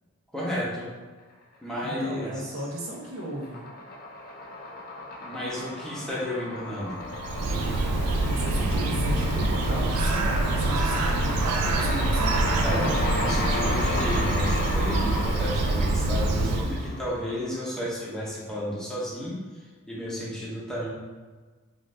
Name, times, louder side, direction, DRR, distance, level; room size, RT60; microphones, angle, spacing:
voice 1, 0.3-0.9 1.6-2.5 5.2-7.0 12.5-19.4 19.9-20.9, equal, 5° left, -7 dB, 0.7 m, -32 dB
sound 1, 1.7-2.4 2.7-17.9, left 2 dB, 40° left, 0.4 m, -34 dB
voice 2, 1.8-3.7 8.3-12.9, right 1 dB, 60° right, -3 dB, 0.7 m, -35 dB
Bird, 7.0-17.0, right 2 dB, 85° right, 0.3 m, -25 dB
2.6 x 2.5 x 3.2 m, 1.4 s
head